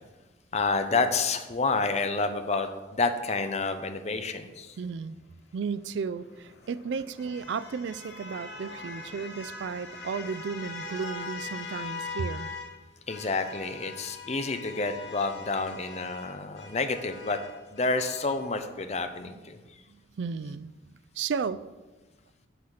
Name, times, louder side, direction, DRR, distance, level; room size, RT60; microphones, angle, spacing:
voice 1, 0.5-4.8 13.1-17.4 17.7-19.8, left 3 dB, 35° left, 8 dB, 0.6 m, -29 dB
voice 2, 4.8-5.2 5.5-12.5 19.2-19.4 19.9-20.7 21.1-21.6, right 5 dB, 70° right, 16 dB, 0.4 m, -34 dB
sound 1, 6.1-12.7 13.1-18.4, left 3 dB, 65° left, 1.2 m, -42 dB
8.0 x 5.6 x 6.4 m, 1.2 s
head